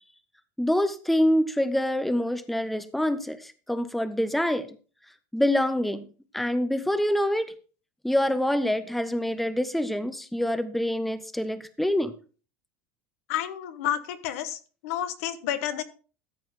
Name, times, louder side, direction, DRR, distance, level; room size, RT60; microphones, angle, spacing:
voice 1, 0.6-4.8 5.3-6.0 6.3-7.5 8.0-12.1, left 1 dB, ahead, 13 dB, 0.7 m, -26 dB
voice 2, 13.3-15.8, left 11 dB, 80° left, 12 dB, 1.2 m, -30 dB
13.5 x 7.5 x 3.7 m, 0.37 s
supercardioid pair, 150°, 8 cm